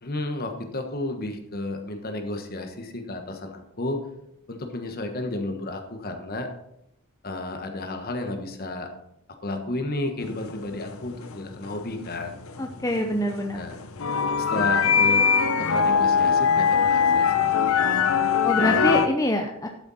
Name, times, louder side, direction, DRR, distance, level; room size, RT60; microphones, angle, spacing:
voice 1, 0.0-4.0 4.5-6.5 7.2-8.9 9.4-12.4 13.5-13.8 14.4-15.3 15.6-17.5, left 2 dB, 45° left, 5 dB, 1.3 m, -32 dB
sound 1, 10.2-19.1, left 6 dB, 75° left, 0.8 m, -22 dB
voice 2, 12.6-13.6 14.6-14.7 18.4-19.7, left 1 dB, 15° left, 4 dB, 0.6 m, -25 dB
12.0 x 6.8 x 4.2 m, 0.82 s
head